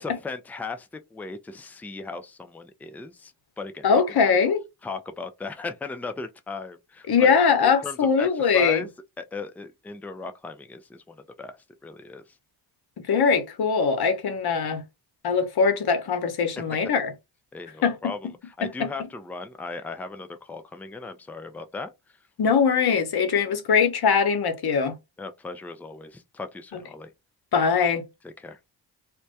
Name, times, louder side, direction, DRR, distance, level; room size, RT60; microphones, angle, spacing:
voice 1, 0.0-3.9 4.2-4.4 4.8-7.3 7.8-8.9 9.2-11.6 11.8-12.2 17.5-21.9 25.2-27.1 28.2-28.6, left 3 dB, 5° left, 0.4 m, -37 dB
voice 2, 3.8-4.6 7.1-8.9 13.1-14.8 15.2-17.1 17.8-18.1 18.6-18.9 22.4-24.9 26.7-26.8 27.5-28.1, left 6 dB, 50° left, 0.9 m, -22 dB
2.2 x 2.1 x 2.7 m
supercardioid pair, 45°, 48 cm